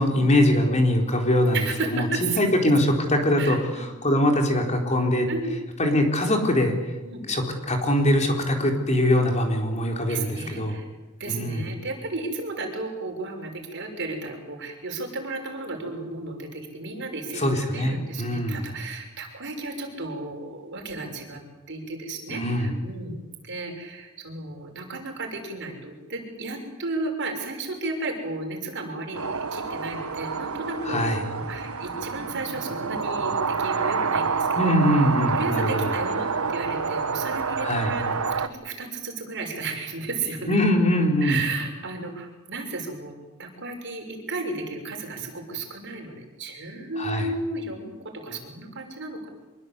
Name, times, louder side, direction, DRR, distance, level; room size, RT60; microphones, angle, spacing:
voice 1, 0.0-1.6 1.9-5.3 5.8-6.7 7.2-10.8 11.3-11.6 17.3-18.7 22.3-22.7 30.8-31.2 34.5-36.0 37.6-37.9 40.5-41.4 47.0-47.3, left 1 dB, 30° left, 3 dB, 4.2 m, -22 dB
voice 2, 1.5-2.4 3.4-3.8 5.3-5.5 7.0-7.2 10.1-10.8 11.2-21.4 21.7-35.0 35.3-40.6 41.2-43.1 43.4-49.3, right 3 dB, 55° right, 2 dB, 6.4 m, -34 dB
sound 1, 29.1-38.5, right 5 dB, 75° right, 1.4 m, -28 dB
25.5 x 23.0 x 8.3 m, 1.1 s
head